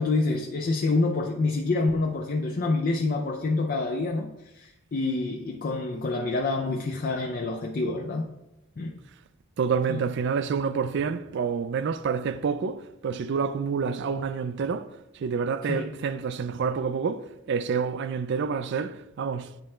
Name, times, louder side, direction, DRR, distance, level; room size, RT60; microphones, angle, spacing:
voice 1, 0.0-8.3 8.8-9.0 9.9-10.0 15.6-15.9, left 3 dB, 40° left, 0.4 m, -27 dB
voice 2, 9.6-19.5, right 6 dB, 55° right, 0.3 m, -28 dB
9.1 x 3.2 x 4.4 m
head